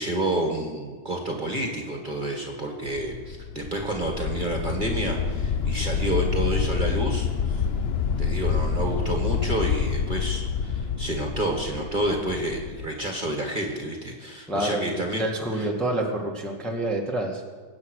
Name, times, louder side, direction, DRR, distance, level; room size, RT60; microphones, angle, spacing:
voice 1, 0.0-7.6 8.2-15.2 15.6-15.7, right 1 dB, 25° right, 1 dB, 1.9 m, -29 dB
sound 1, 2.9-12.9, left 6 dB, 70° left, 0.5 m, -27 dB
voice 2, 14.5-17.4, right 1 dB, ahead, -1 dB, 1.7 m, -28 dB
23.5 x 9.0 x 6.5 m, 1.5 s
omnidirectional pair, 2.1 m